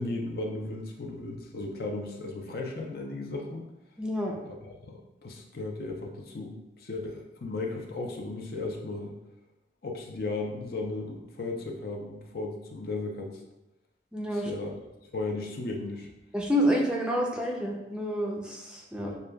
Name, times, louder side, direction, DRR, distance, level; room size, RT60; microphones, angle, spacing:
voice 1, 0.0-3.6 4.4-9.2 9.8-13.4 14.3-14.8 15.1-16.1 19.0-19.2, left 2 dB, 55° left, 1 dB, 0.5 m, -35 dB
voice 2, 4.0-4.3 14.1-14.5 16.3-19.1, equal, 5° right, -1 dB, 0.4 m, -28 dB
6.5 x 2.3 x 2.2 m, 0.94 s
head